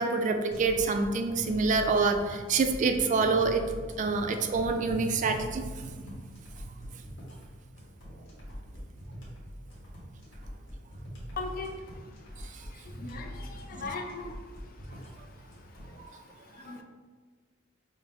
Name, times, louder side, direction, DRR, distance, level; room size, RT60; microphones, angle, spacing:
voice 1, 0.0-3.6 4.0-5.9 6.8-6.9 12.6-12.7, right 4 dB, 40° right, 6 dB, 0.3 m, -27 dB
sound 1, 0.5-15.9, equal, 65° left, 1.3 m, -44 dB
voice 2, 11.4-11.7 13.0-14.4 16.6-16.8, left 3 dB, 45° left, 4 dB, 0.4 m, -38 dB
5.9 x 2.0 x 3.4 m, 1.4 s
head